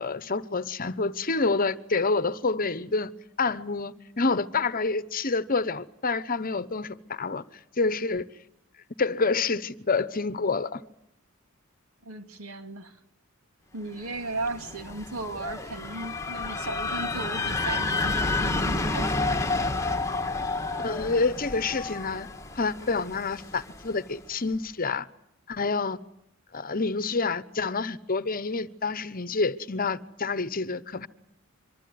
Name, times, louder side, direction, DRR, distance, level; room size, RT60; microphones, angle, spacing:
voice 1, 0.0-3.1 3.4-7.4 7.8-8.3 9.0-10.8 20.8-22.3 22.5-25.1 25.5-26.0 26.5-31.1, left 4 dB, 40° left, 1.0 m, -28 dB
voice 2, 12.0-13.0 13.7-19.1, right 2 dB, 80° right, 2.9 m, -36 dB
sound 1, 14.1-24.0, left 3 dB, 15° left, 1.4 m, -30 dB
25.0 x 24.5 x 9.5 m
head